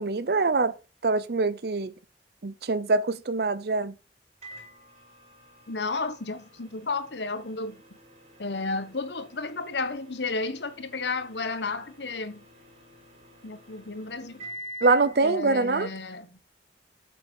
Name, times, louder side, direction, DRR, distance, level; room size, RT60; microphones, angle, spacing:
voice 1, 0.0-1.9 2.4-3.9 14.8-15.9, right 3 dB, 60° right, 0.6 m, -24 dB
Microwave oven, 4.4-15.2, equal, 35° right, 5.0 m, -48 dB
voice 2, 5.7-7.8 8.4-12.4 13.4-14.5 15.2-16.3, left 3 dB, 85° left, 1.2 m, -32 dB
8.3 x 6.9 x 6.9 m
head